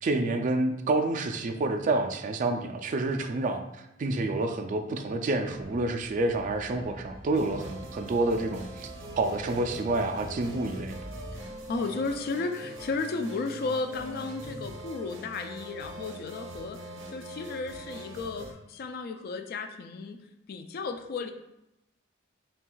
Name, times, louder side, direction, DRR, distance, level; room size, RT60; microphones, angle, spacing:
voice 1, 0.0-3.6 4.0-8.9 9.2-11.0, right 2 dB, 40° right, 4 dB, 0.3 m, -28 dB
sound 1, 5.5-11.8, equal, 75° left, 0.9 m, -47 dB
sound 2, 7.3-18.5, right 1 dB, 80° right, 0.7 m, -42 dB
voice 2, 11.3-20.2 20.5-21.3, left 3 dB, 50° left, 6 dB, 0.3 m, -34 dB
4.5 x 3.4 x 2.3 m, 0.86 s
head